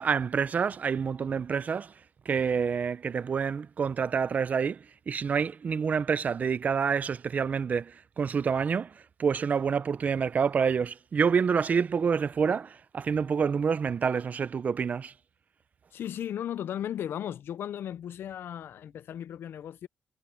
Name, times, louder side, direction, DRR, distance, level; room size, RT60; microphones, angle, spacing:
voice 1, 0.0-2.0 2.3-15.1, right 6 dB, 40° right, 0.5 m, -28 dB
voice 2, 15.9-19.9, left 10 dB, 70° left, 0.5 m, -36 dB
cardioid pair, 130°, 4 cm